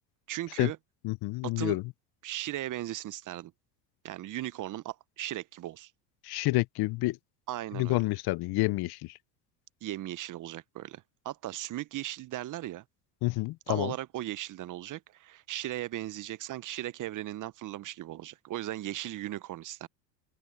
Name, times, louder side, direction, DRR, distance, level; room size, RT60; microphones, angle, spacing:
voice 1, 0.3-0.8 1.4-1.8 2.2-3.5 4.0-5.9 7.5-8.0 9.8-12.8 13.7-19.9, right 14 dB, 40° right, 0.7 m, -37 dB
voice 2, 1.0-1.8 6.2-7.2 7.7-9.1 13.2-13.9, left 20 dB, 50° left, 0.7 m, -29 dB
open air
supercardioid pair, 90°, 48 cm